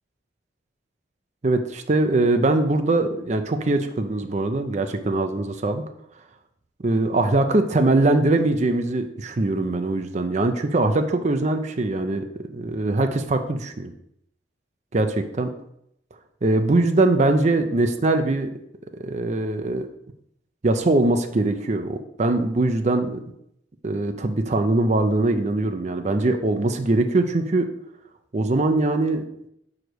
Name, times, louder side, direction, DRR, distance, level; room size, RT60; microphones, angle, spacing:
voice 1, 1.4-5.8 6.8-13.9 14.9-15.5 16.4-18.5 19.0-19.9 20.6-23.2 23.8-27.7 28.3-29.2, right 2 dB, 35° right, 7 dB, 0.5 m, -22 dB
5.1 x 4.9 x 6.2 m, 0.76 s
head